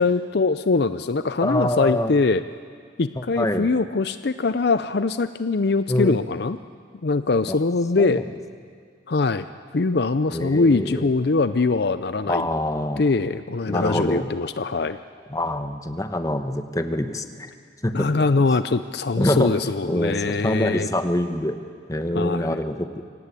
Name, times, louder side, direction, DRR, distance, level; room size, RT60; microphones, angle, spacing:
voice 1, 0.0-2.4 3.0-6.6 7.0-8.2 9.1-9.5 9.7-12.5 13.0-15.0 17.9-20.9 22.1-22.6, left 3 dB, 60° left, 12 dB, 0.6 m, -22 dB
voice 2, 1.4-2.1 3.4-3.7 5.9-6.2 7.5-7.6 8.0-8.2 10.3-11.1 12.3-13.1 13.7-14.3 15.3-17.5 17.8-18.3 19.2-21.6 21.9-22.9, left 1 dB, 20° left, 8 dB, 1.1 m, -25 dB
25.0 x 18.0 x 8.3 m, 2.1 s
head